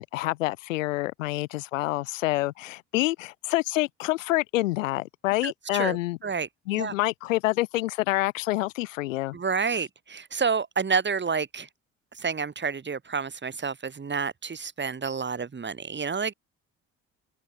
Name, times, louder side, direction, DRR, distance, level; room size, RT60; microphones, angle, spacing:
voice 1, 0.0-6.2 6.7-9.4, left 18 dB, 85° left, 0.8 m, -27 dB
voice 2, 5.4-6.0 6.2-6.5 6.8-6.9 9.3-11.7 12.2-16.3, right 5 dB, 30° right, 1.9 m, -29 dB
open air
hypercardioid pair, 50°, 38 cm